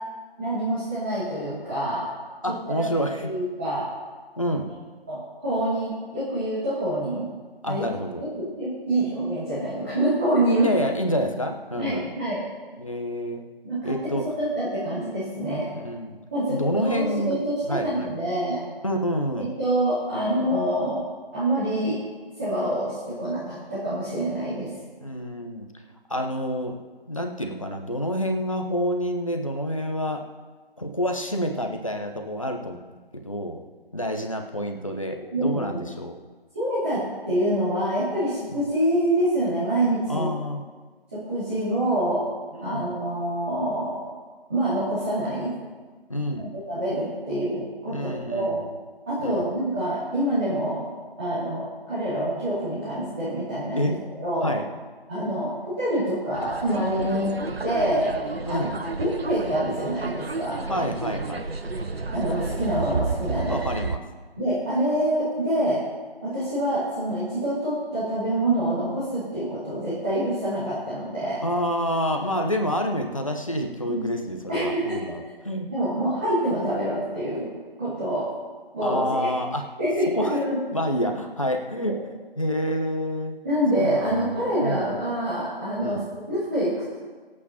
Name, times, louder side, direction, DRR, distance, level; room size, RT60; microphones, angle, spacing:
voice 1, 0.4-2.0 2.7-2.8 3.2-3.8 5.1-7.2 7.6-7.8 8.2-10.7 11.7-12.4 13.6-15.7 16.3-18.6 19.4-21.0 21.3-22.0 22.4-24.7 35.3-35.8 36.5-40.3 41.3-42.2 42.6-44.0 44.5-45.5 46.4-48.6 49.1-50.9 51.2-53.9 54.2-54.5 55.1-57.3 57.6-58.1 58.5-58.7 59.0-60.6 62.1-63.6 64.4-65.8 66.2-71.4 73.8-74.0 74.5-75.0 75.7-77.5 77.8-78.3 78.7-79.2 79.8-80.6 83.4-87.0, right 1 dB, 15° right, -14 dB, 2.6 m, -26 dB
voice 2, 2.4-3.3 4.4-4.7 7.6-8.3 10.6-12.1 12.8-13.4 13.8-14.3 15.7-16.2 16.5-17.4 17.7-18.1 18.8-19.5 25.0-25.7 26.1-26.8 27.1-30.2 30.8-32.8 33.1-33.6 33.9-36.2 38.5-38.6 40.1-40.6 42.7-42.9 46.1-46.5 47.8-48.6 49.2-49.5 53.8-54.0 54.4-54.6 58.5-58.7 60.7-61.5 63.5-64.0 71.4-75.7 78.8-79.7 80.1-80.4 80.7-82.0 82.4-83.3 83.7-84.9 85.8-86.1, equal, 35° left, 4 dB, 1.0 m, -28 dB
sound 1, 56.3-64.0, right 3 dB, 75° right, 0.9 m, -31 dB
25.5 x 8.7 x 2.9 m, 1.4 s
figure-of-eight pair, 170°, 31 cm